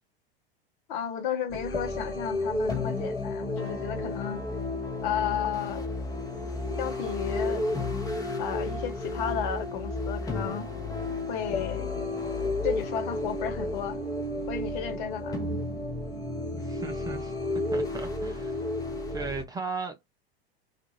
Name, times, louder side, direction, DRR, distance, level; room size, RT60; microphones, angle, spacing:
voice 1, 0.9-4.4 5.0-5.8 6.8-7.6 8.4-10.7 11.3-11.9 12.6-14.0 14.5-15.4, left 8 dB, 55° left, 0.9 m, -33 dB
sound 1, 1.5-19.4, left 2 dB, 10° left, 0.9 m, -32 dB
voice 2, 16.6-17.3 17.7-18.6 19.1-20.0, right 4 dB, 15° right, 0.4 m, -36 dB
2.5 x 2.4 x 2.9 m
hypercardioid pair, 95°, 31 cm